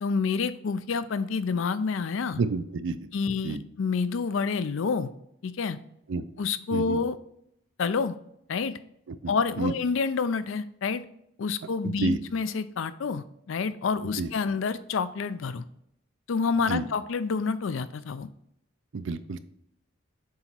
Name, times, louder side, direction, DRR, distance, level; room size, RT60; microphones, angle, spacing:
voice 1, 0.0-2.4 3.1-5.1 5.4-5.8 6.4-7.2 7.8-8.2 8.5-8.8 9.3-11.0 11.4-15.6 16.3-18.3, left 5 dB, 75° left, 13 dB, 0.4 m, -28 dB
voice 2, 2.4-3.0 3.4-3.6 6.1-6.2 6.7-7.0 9.1-9.3 9.6-9.7 11.8-12.2 14.2-14.3 16.7-16.9 18.9-19.4, right 3 dB, 65° right, 12 dB, 0.4 m, -29 dB
7.5 x 3.0 x 4.3 m, 0.73 s
head